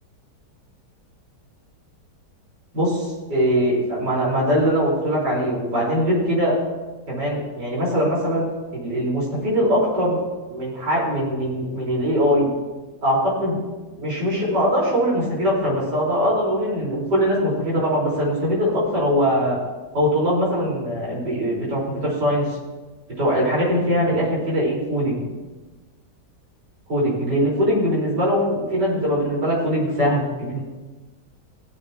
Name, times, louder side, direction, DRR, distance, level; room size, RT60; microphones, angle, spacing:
voice 1, 2.7-6.6 7.1-10.2 10.5-12.5 13.0-13.6 14.0-19.6 19.9-22.6 23.2-25.3 26.9-30.6, equal, 75° right, -6 dB, 5.2 m, -21 dB
21.5 x 8.2 x 2.9 m, 1.2 s
omnidirectional pair, 1.8 m